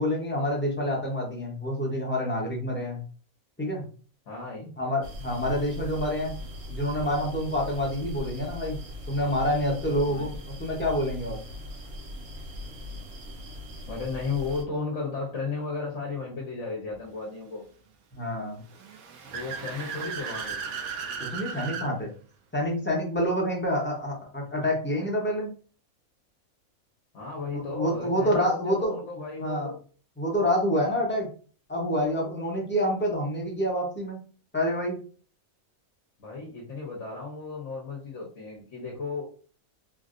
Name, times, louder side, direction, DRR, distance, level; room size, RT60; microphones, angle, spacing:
voice 1, 0.0-3.0 3.6-3.9 4.8-6.3 6.7-8.8 9.1-11.4 18.1-18.6 21.3-22.1 22.5-25.5 27.5-29.0 29.4-29.7 30.2-31.3 31.7-34.2 34.5-35.0, equal, 10° left, -2 dB, 0.7 m, -27 dB
voice 2, 4.3-4.7 10.1-10.4 13.9-17.6 19.3-20.6 27.1-29.7 36.2-39.3, left 4 dB, 60° left, -2 dB, 1.1 m, -34 dB
sound 1, 5.0-14.6, left 1 dB, 55° right, 0.9 m, -40 dB
Car / Accelerating revving vroom, 18.7-21.9, right 6 dB, 80° right, 1.1 m, -36 dB
3.4 x 2.5 x 2.5 m, 0.40 s
omnidirectional pair, 1.5 m